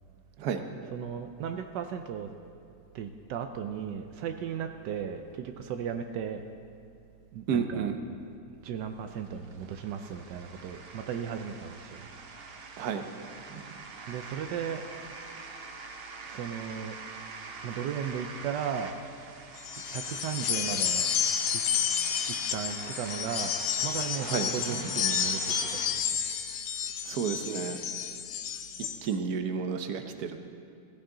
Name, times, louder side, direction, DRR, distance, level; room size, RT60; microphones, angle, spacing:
voice 1, 0.8-2.3 2.9-6.4 7.3-7.9 8.6-12.1 14.1-14.8 16.3-17.0 17.6-18.9 19.9-21.1 21.5-21.6 22.3-26.2, right 8 dB, 85° right, 7 dB, 1.3 m, -36 dB
voice 2, 7.5-8.0 12.8-13.0 13.5-13.6 24.2-24.8 27.1-27.8 29.0-30.4, right 6 dB, 65° right, 6 dB, 1.3 m, -31 dB
sound 1, 8.9-25.9, right 4 dB, 45° right, 0.9 m, -45 dB
sound 2, 19.6-29.0, left 8 dB, 85° left, 1.4 m, -31 dB
16.0 x 15.5 x 3.8 m, 2.4 s
omnidirectional pair, 1.8 m